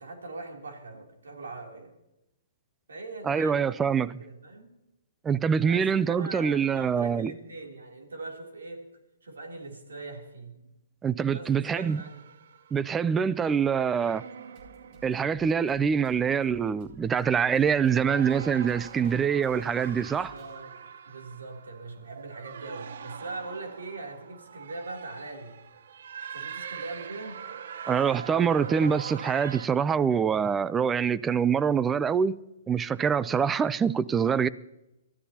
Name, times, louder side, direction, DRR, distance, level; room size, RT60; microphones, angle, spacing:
voice 1, 0.0-2.0 2.9-3.8 4.2-4.8 5.6-8.9 9.2-10.6 11.2-12.2 20.1-20.8 21.0-25.6 26.3-27.4, right 3 dB, 85° right, 3.2 m, -41 dB
voice 2, 3.2-4.1 5.2-7.3 11.0-12.0 12.7-14.2 15.0-20.3 27.9-32.4 32.7-34.5, right 7 dB, 15° right, 0.5 m, -25 dB
sound 1, 11.8-13.1 13.6-16.1 16.6-16.9 17.7-29.7, right 7 dB, 70° right, 0.7 m, -43 dB
Drum kit, 14.5-20.5, right 1 dB, 35° right, 2.9 m, -54 dB
23.5 x 13.5 x 2.9 m
hypercardioid pair, 135°, 0 cm